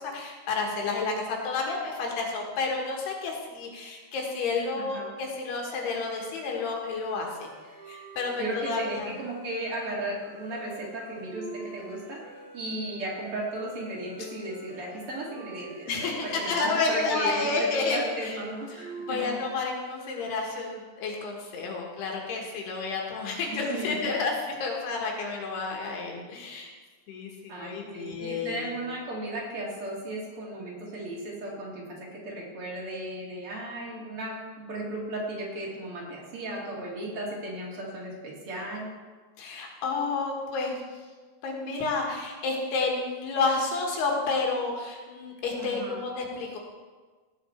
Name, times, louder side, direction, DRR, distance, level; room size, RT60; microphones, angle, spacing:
voice 1, 0.0-7.5 7.9-9.1 15.8-18.4 19.1-26.7 27.1-28.6 39.4-40.8 41.4-46.6, left 4 dB, 80° left, 0 dB, 3.6 m, -30 dB
voice 2, 4.8-5.1 8.4-12.2 12.5-19.4 23.5-23.9 27.5-34.4 34.7-38.9 45.6-46.0, right 1 dB, 40° right, -3 dB, 2.9 m, -35 dB
sound 1, 5.7-20.7, right 3 dB, 65° right, 4.1 m, -46 dB
18.0 x 6.5 x 4.5 m, 1.4 s
omnidirectional pair, 4.6 m